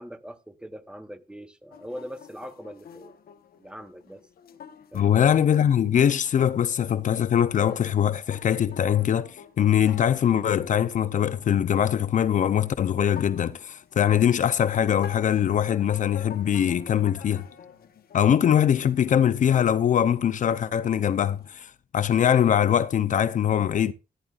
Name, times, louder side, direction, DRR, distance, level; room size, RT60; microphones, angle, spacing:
voice 1, 0.0-3.1 3.6-4.2 4.9-5.2, equal, 5° right, 0.9 m, -41 dB
sound 1, 1.7-21.5, left 8 dB, 85° left, 1.1 m, -47 dB
voice 2, 4.9-17.4 18.1-23.9, left 9 dB, 60° left, 0.5 m, -22 dB
14.5 x 10.5 x 2.4 m
wide cardioid pair, 160°, 15 cm